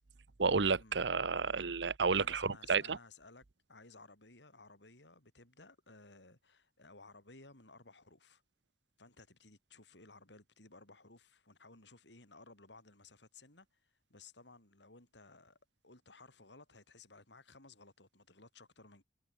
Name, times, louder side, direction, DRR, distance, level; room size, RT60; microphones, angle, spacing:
voice 1, 0.4-3.0, right 5 dB, 85° right, 1.0 m, -31 dB
voice 2, 2.1-3.4 3.7-8.4 9.0-15.6 15.8-19.0, left 3 dB, 85° left, 5.4 m, -58 dB
head